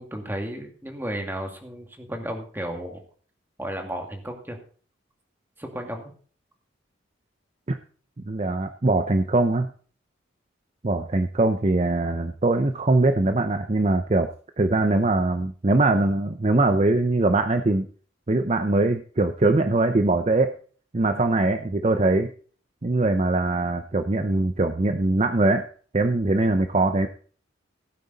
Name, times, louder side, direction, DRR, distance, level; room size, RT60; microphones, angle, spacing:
voice 1, 0.0-3.0 3.6-4.6 5.6-6.1, right 1 dB, 10° right, 3 dB, 2.2 m, -33 dB
voice 2, 8.3-9.7 10.8-14.3 14.6-17.9 18.3-20.5 20.9-22.3 22.8-25.7 25.9-27.1, right 2 dB, 35° right, 8 dB, 0.6 m, -22 dB
16.5 x 9.2 x 4.0 m, 0.43 s
head